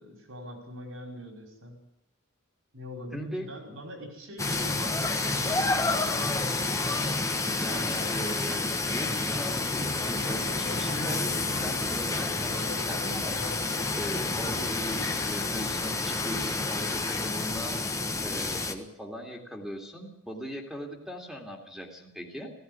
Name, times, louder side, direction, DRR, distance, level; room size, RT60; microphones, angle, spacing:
voice 1, 0.0-1.8 2.7-6.4 7.7-8.3 14.5-14.9, left 1 dB, 70° right, 3 dB, 5.4 m, -44 dB
voice 2, 3.1-3.5 7.6-13.4 13.9-17.7 18.2-22.5, equal, ahead, 1 dB, 2.5 m, -39 dB
sound 1, 4.4-18.7, left 3 dB, 15° left, 1.4 m, -29 dB
sound 2, 9.7-16.5, left 4 dB, 60° left, 1.1 m, -43 dB
16.5 x 16.5 x 9.6 m, 0.79 s
head